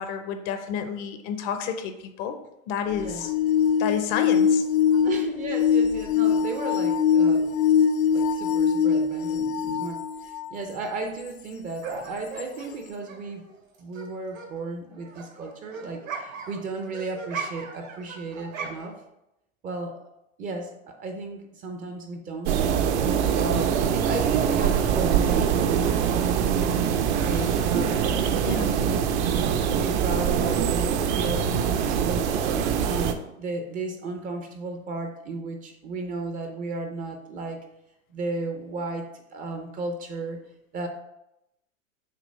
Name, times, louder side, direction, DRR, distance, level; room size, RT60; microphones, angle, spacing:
voice 1, 0.0-2.4 2.7-3.3 3.8-4.6 4.9-5.0 28.5-28.7, left 7 dB, 35° left, 8 dB, 0.6 m, -30 dB
sound 1, 2.9-10.6 11.3-11.4 12.4-12.5, left 7 dB, 75° left, 0.6 m, -23 dB
voice 2, 5.0-7.5 8.1-13.5 13.8-18.9 19.6-20.0 20.4-22.6 23.3-26.0 27.2-29.0 29.3-32.3 32.8-37.6 38.1-40.4 40.7-40.9, right 3 dB, 20° right, 5 dB, 0.5 m, -34 dB
sound 2, 11.8-14.1 14.3-19.0, right 5 dB, 80° right, 2.2 m, -38 dB
sound 3, 22.5-33.1, right 8 dB, 55° right, 0.7 m, -23 dB
6.7 x 3.1 x 5.2 m, 0.85 s
hypercardioid pair, 125°, 40 cm